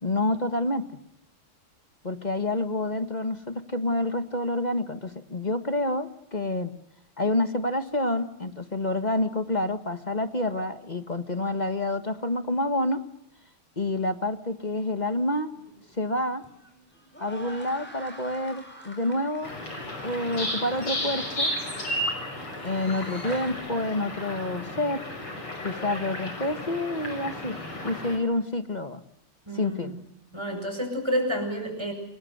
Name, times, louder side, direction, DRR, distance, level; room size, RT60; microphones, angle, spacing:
voice 1, 0.0-0.8 2.0-6.7 7.2-13.0 13.8-15.5 16.0-16.4 17.2-19.5 20.0-21.5 22.6-25.0 25.6-27.6 27.8-29.0 29.5-29.9, left 1 dB, 20° left, 9 dB, 1.4 m, -28 dB
sound 1, 15.5-23.5, equal, 5° left, 6.3 m, -47 dB
sound 2, 19.4-28.2, left 1 dB, 90° left, 6.9 m, -33 dB
voice 2, 29.5-30.0 30.3-31.9, equal, 10° right, 4 dB, 8.1 m, -29 dB
28.5 x 22.5 x 8.1 m, 0.77 s
omnidirectional pair, 2.4 m